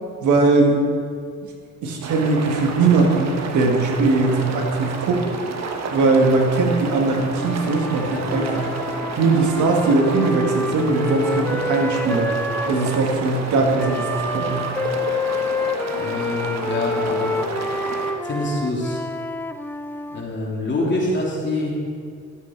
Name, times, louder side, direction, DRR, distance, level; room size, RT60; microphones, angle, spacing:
voice 1, 0.2-0.8 1.8-5.2 5.9-8.7 9.2-12.3 12.7-14.7, right 3 dB, 75° right, 1 dB, 1.7 m, -20 dB
sound 1, 2.0-18.1, right 4 dB, 60° right, 1.2 m, -30 dB
Wind instrument woodwind instrument, 7.3-13.1 13.8-20.3, left 2 dB, 5° left, 0.5 m, -28 dB
voice 2, 16.0-17.3 18.2-19.0 20.1-21.7, left 2 dB, 40° left, -4 dB, 3.0 m, -25 dB
12.5 x 8.2 x 4.6 m, 2.2 s
cardioid pair, 90°, 30 cm